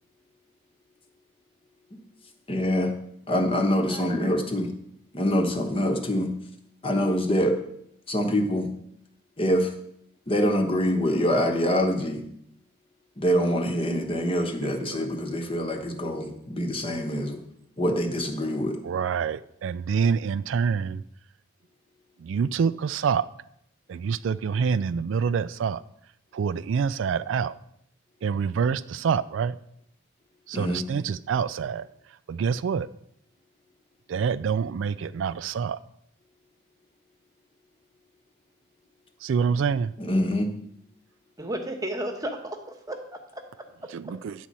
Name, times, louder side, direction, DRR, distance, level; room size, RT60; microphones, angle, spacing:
voice 1, 2.5-2.9 3.3-4.7 5.1-6.3 6.8-7.6 8.1-8.7 9.4-9.7 10.3-12.2 13.2-17.4 17.8-18.8 30.5-30.8 40.0-40.5, equal, 25° left, 5 dB, 1.0 m, -25 dB
voice 2, 3.9-4.4 41.4-44.2, right 1 dB, 15° right, 5 dB, 1.1 m, -35 dB
voice 3, 14.6-15.0 18.8-21.0 22.2-23.3 23.9-25.8 26.3-27.5 28.2-29.5 30.5-31.9 32.3-32.9 34.1-35.8 39.2-39.9 43.9-44.3, right 6 dB, 65° right, 15 dB, 0.3 m, -26 dB
9.9 x 4.1 x 7.5 m, 0.72 s
head